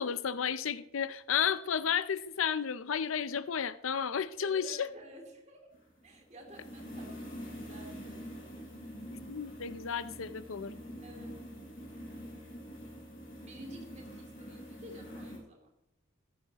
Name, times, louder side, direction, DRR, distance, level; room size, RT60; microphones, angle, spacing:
voice 1, 0.0-4.9 9.1-10.7, left 7 dB, 80° left, 0.6 m, -32 dB
voice 2, 4.4-5.7 6.0-8.7 11.0-11.4 13.4-15.7, equal, 35° right, 2.8 m, -51 dB
sound 1, 5.7-15.4, equal, 45° left, 4.2 m, -45 dB
14.0 x 12.5 x 3.0 m
head